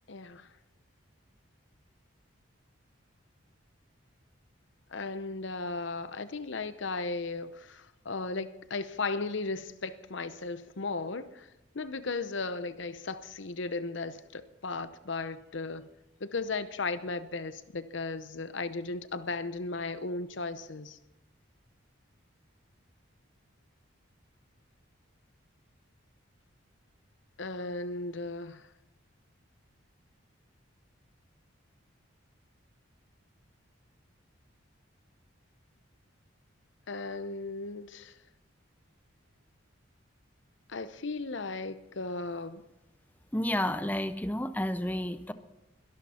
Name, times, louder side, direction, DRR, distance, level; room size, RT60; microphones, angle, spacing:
voice 1, 0.1-0.5 4.9-11.5 11.7-15.9 16.2-21.0 27.4-28.7 36.9-38.1 40.7-42.6, left 3 dB, 60° left, 13 dB, 0.8 m, -36 dB
voice 2, 43.3-45.3, left 1 dB, 10° left, 11 dB, 0.6 m, -31 dB
21.5 x 12.0 x 4.4 m, 0.93 s
head